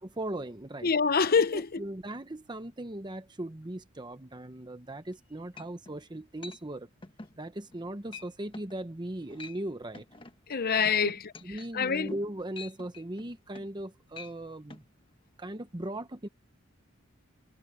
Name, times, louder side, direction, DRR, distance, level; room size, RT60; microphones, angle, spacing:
voice 1, 0.2-0.9 1.5-6.9 7.4-10.1 11.0-11.1 11.4-14.8 15.4-16.3, right 1 dB, 20° right, 0.9 m, -38 dB
voice 2, 0.8-1.8 10.5-11.2 11.7-12.1, left 5 dB, 45° left, 0.8 m, -25 dB
sound 1, 5.1-5.2 5.6-6.0 6.4-6.6 7.0-7.4 7.7-7.9 8.1-8.3 8.5-8.8 9.2-9.6 9.9-13.8 14.1-14.3 14.7-14.8, left 3 dB, 25° left, 1.3 m, -47 dB
head